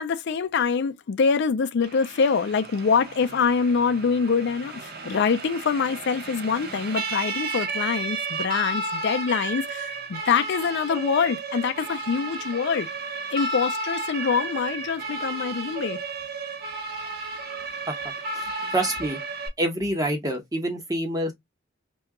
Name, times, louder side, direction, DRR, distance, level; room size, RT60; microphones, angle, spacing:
voice 1, 0.0-12.9 13.3-16.0 18.6-18.7, left 5 dB, 60° left, 0.4 m, -25 dB
Siren, 1.8-19.5, right 3 dB, 55° right, 0.7 m, -33 dB
voice 2, 18.7-19.2 19.6-21.3, right 1 dB, 20° right, 0.9 m, -26 dB
2.8 x 2.2 x 3.4 m
head